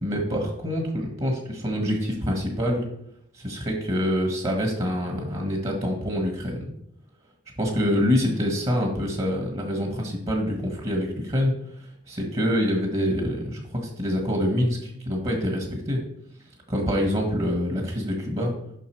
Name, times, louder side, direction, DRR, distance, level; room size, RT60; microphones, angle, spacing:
voice 1, 0.0-2.8 3.3-6.7 7.6-16.0 16.7-18.5, equal, 35° right, 1 dB, 1.4 m, -26 dB
6.7 x 5.8 x 4.5 m, 0.74 s
head